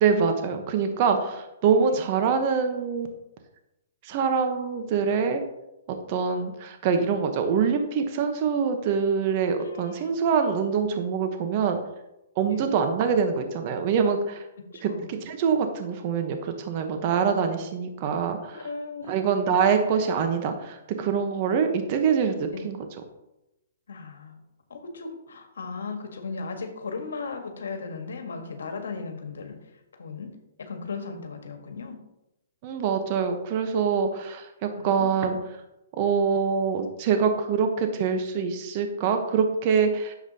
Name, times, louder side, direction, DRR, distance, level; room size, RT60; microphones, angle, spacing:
voice 1, 0.0-3.1 4.0-5.4 5.9-11.8 12.4-14.4 14.8-18.7 19.1-22.8 32.6-35.4 36.0-40.1, right 6 dB, 40° right, 6 dB, 1.0 m, -25 dB
voice 2, 9.6-10.2 12.5-12.6 14.6-15.1 18.5-19.1 19.9-20.0 22.5-22.7 23.9-24.4 24.7-29.6 29.9-30.3 30.6-32.0 34.7-35.3, left 4 dB, 80° left, 5 dB, 1.4 m, -36 dB
9.9 x 7.2 x 2.8 m, 0.90 s
hypercardioid pair, 135°, 0 cm